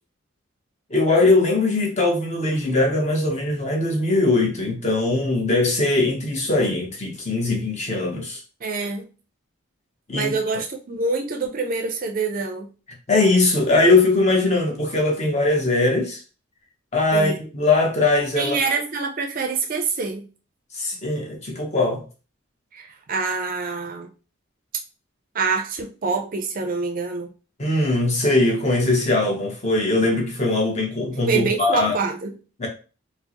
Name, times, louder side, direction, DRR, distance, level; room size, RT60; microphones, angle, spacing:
voice 1, 0.9-8.4 10.1-10.3 13.1-16.2 16.9-18.6 20.7-22.0 27.6-31.9 32.6-32.7, left 2 dB, 30° left, 0.8 m, -20 dB
voice 2, 8.6-9.1 10.1-12.7 17.1-17.4 18.4-20.3 22.7-24.1 25.3-27.3 31.3-32.4, right 4 dB, 40° right, 0.5 m, -26 dB
4.3 x 2.0 x 2.8 m
head